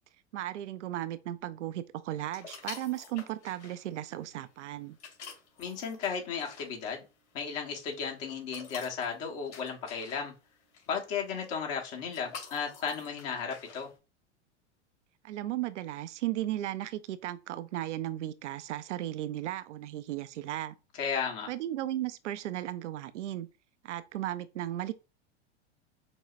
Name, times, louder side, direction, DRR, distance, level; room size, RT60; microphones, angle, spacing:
voice 1, 0.3-5.0 15.2-20.7 21.5-23.5 23.8-24.9, right 13 dB, 85° right, 0.5 m, -35 dB
sound 1, 2.3-14.0, left 5 dB, 75° left, 2.3 m, -50 dB
voice 2, 5.6-7.0 7.3-10.3 10.9-13.9 20.9-21.5, left 6 dB, 60° left, 1.4 m, -34 dB
6.0 x 2.1 x 2.5 m
hypercardioid pair, 95°, 35 cm